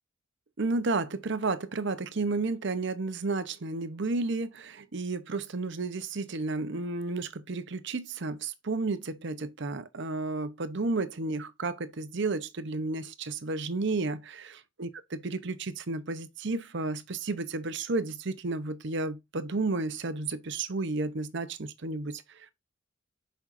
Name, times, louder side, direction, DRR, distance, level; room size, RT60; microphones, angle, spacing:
voice 1, 0.6-14.4 14.8-22.5, right 3 dB, 65° right, 0.8 m, -32 dB
7.3 x 5.5 x 2.6 m
head